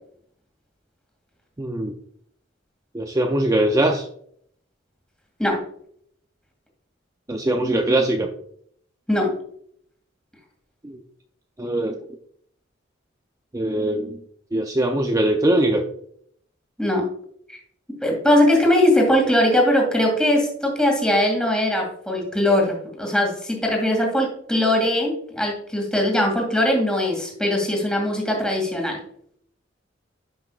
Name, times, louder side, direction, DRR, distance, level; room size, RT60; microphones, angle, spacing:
voice 1, 1.6-1.9 2.9-4.1 7.3-8.3 10.8-11.0 11.6-12.0 13.5-14.2 14.5-15.8, right 1 dB, 20° right, 3 dB, 0.5 m, -21 dB
voice 2, 16.8-17.1 17.5-17.6 18.0-29.0, left 1 dB, 5° left, 0 dB, 2.2 m, -20 dB
10.5 x 6.1 x 2.4 m, 0.66 s
head